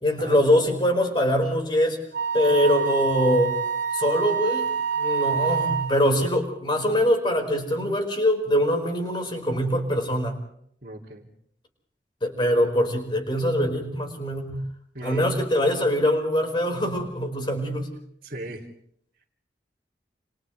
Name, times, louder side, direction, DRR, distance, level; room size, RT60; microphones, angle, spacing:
voice 1, 0.0-2.0 2.3-3.5 3.9-4.7 5.0-10.4 12.2-14.5 15.0-17.9, equal, 25° left, 4 dB, 4.8 m, -23 dB
Wind instrument woodwind instrument, 2.1-6.0, right 6 dB, 85° right, 2.1 m, -26 dB
voice 2, 10.8-11.3 14.9-15.3 18.2-18.6, right 1 dB, 50° right, -4 dB, 2.6 m, -37 dB
29.5 x 28.0 x 3.3 m, 0.67 s
head